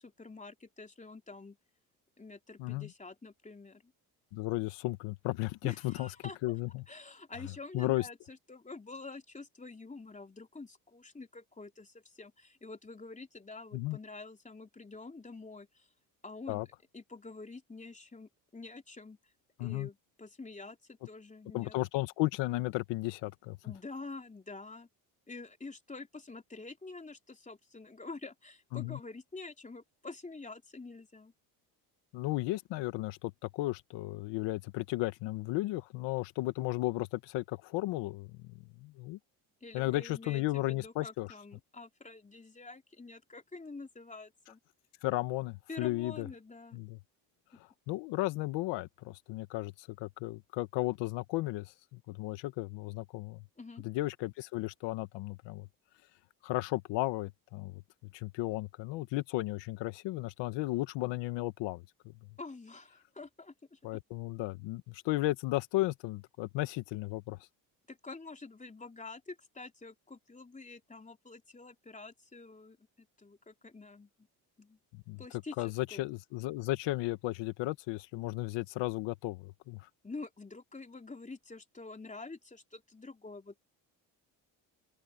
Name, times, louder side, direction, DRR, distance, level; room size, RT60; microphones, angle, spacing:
voice 1, 0.0-1.6 2.2-3.9 5.6-6.6 6.9-15.9 16.2-16.7 16.9-19.3 19.6-21.8 23.6-24.9 25.3-31.3 39.6-44.6 45.7-46.8 53.6-53.8 62.4-63.8 67.9-74.3 74.6-74.8 75.2-76.1 80.0-83.6, left 3 dB, 15° left, 3.2 m, -47 dB
voice 2, 4.3-6.1 6.4-6.8 7.7-8.0 13.7-14.0 16.5-16.7 19.6-19.9 21.5-23.6 28.7-29.0 32.1-39.2 39.7-41.3 45.0-46.3 46.7-47.0 47.9-53.4 53.8-55.7 56.4-57.8 58.1-61.8 63.8-67.4 74.9-75.2 75.6-79.9, left 19 dB, 80° left, 1.6 m, -34 dB
supercardioid pair, 80°, 43 cm